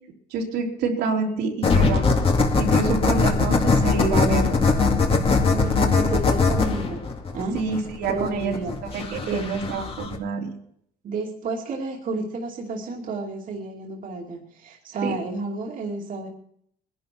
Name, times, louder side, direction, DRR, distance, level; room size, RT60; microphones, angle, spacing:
voice 1, 0.3-2.1 2.6-4.6 7.5-8.5 8.9-10.5 15.0-15.2, right 4 dB, 80° right, 0 dB, 3.5 m, -27 dB
sound 1, 1.6-10.2, left 4 dB, 35° left, 2.3 m, -21 dB
voice 2, 5.4-7.6 8.1-9.4 11.0-16.3, right 3 dB, 55° right, -1 dB, 2.6 m, -31 dB
21.0 x 11.0 x 4.6 m, 0.68 s
cardioid pair, 110°, 17 cm